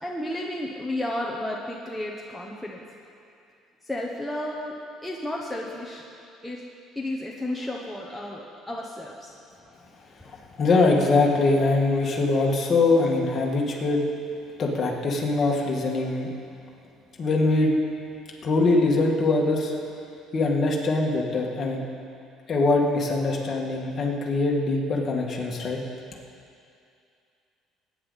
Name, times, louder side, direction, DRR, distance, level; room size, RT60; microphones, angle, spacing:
voice 1, 0.0-2.8 3.8-4.7 5.0-6.0 6.4-6.6 7.0-9.3 10.2-10.4, left 1 dB, ahead, -3 dB, 1.0 m, -32 dB
voice 2, 10.6-14.1 14.6-16.3 17.2-17.7 18.4-19.8 20.3-21.8 22.5-25.8, left 3 dB, 35° left, -1 dB, 2.0 m, -22 dB
21.5 x 9.8 x 4.1 m, 2.5 s
cardioid pair, 150°, 0 cm